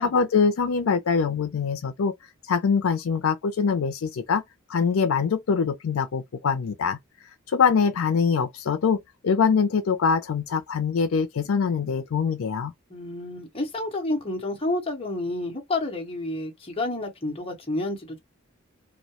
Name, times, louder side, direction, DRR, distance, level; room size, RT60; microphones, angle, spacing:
voice 1, 0.0-2.1 2.5-4.4 4.7-7.0 7.5-12.7, left 5 dB, 85° left, 0.4 m, -23 dB
voice 2, 12.9-18.2, left 2 dB, 25° left, 0.9 m, -30 dB
2.3 x 2.1 x 2.8 m
head